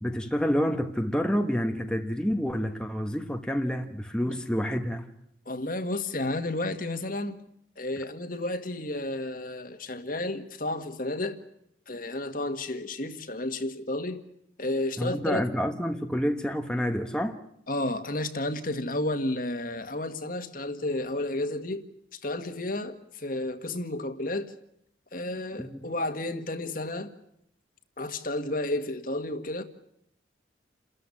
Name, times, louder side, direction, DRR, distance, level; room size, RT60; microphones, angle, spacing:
voice 1, 0.0-5.1 15.0-17.4 25.6-25.8, equal, 5° left, 1.2 m, -28 dB
voice 2, 5.5-7.4 7.8-11.4 11.9-14.3 14.6-15.5 17.7-21.9 22.1-24.5 25.1-27.1 28.0-29.6, left 1 dB, 45° left, 1.8 m, -32 dB
29.5 x 14.0 x 9.9 m
head